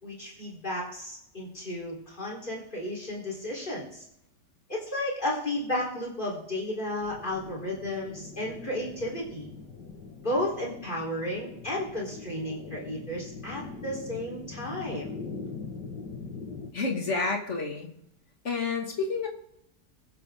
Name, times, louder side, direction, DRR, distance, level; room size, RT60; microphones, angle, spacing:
voice 1, 0.0-4.0 4.7-9.5 10.2-15.2, left 1 dB, 30° left, -2 dB, 4.0 m, -33 dB
sound 1, 7.0-16.7, left 4 dB, 85° left, 2.5 m, -42 dB
voice 2, 16.7-17.9 18.4-19.3, left 4 dB, 45° left, 2 dB, 2.3 m, -29 dB
23.0 x 8.0 x 3.7 m, 0.78 s
omnidirectional pair, 1.8 m